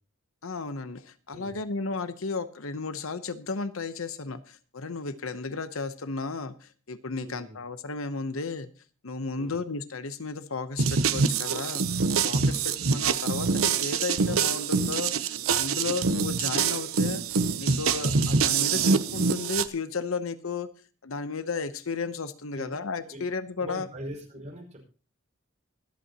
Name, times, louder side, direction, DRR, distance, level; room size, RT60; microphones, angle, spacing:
voice 1, 0.4-8.7 9.0-11.8 12.2-15.1 15.5-17.2 17.6-20.7 21.0-23.9, left 4 dB, 75° left, 12 dB, 0.9 m, -34 dB
voice 2, 7.1-7.6 9.3-9.6 12.3-12.6 15.7-15.9 18.0-18.2 22.5-22.6 23.1-23.2 23.6-24.8, equal, 35° right, 0 dB, 5.2 m, -42 dB
sound 1, 10.8-19.7, right 5 dB, 85° right, 0.8 m, -25 dB
25.0 x 8.3 x 3.0 m, 0.38 s
head